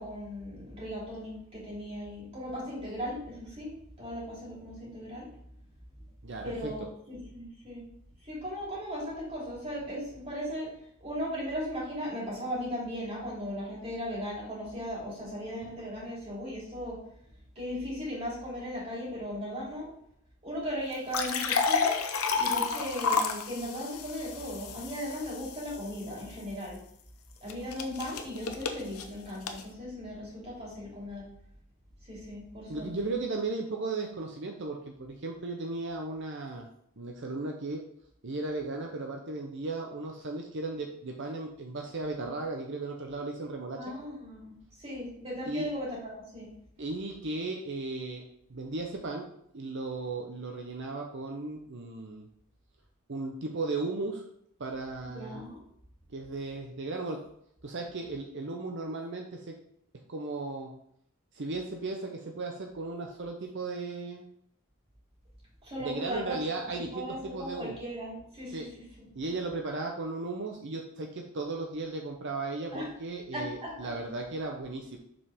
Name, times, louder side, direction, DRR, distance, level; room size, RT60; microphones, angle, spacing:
voice 1, 0.0-5.3 6.4-7.9 8.2-10.7 11.0-17.0 17.5-19.9 20.4-26.8 27.4-31.3 32.0-33.1 43.8-46.5 55.0-55.6 65.6-66.4 66.8-68.7 69.0-69.1 72.7-72.9 73.3-73.9, equal, 30° right, -5 dB, 3.0 m, -37 dB
voice 2, 6.2-6.9 32.7-36.7 37.0-37.8 38.2-43.9 45.5-45.7 46.8-48.2 48.5-49.3 49.5-52.3 53.1-54.2 54.6-55.4 56.1-57.2 57.6-59.6 60.1-60.7 61.3-64.2 65.8-67.7 68.5-68.7 69.1-75.0, right 3 dB, 55° right, 2 dB, 0.7 m, -36 dB
sound 1, 20.9-26.0 27.5-29.6, left 5 dB, 75° left, 0.8 m, -31 dB
6.9 x 5.5 x 3.5 m, 0.70 s
head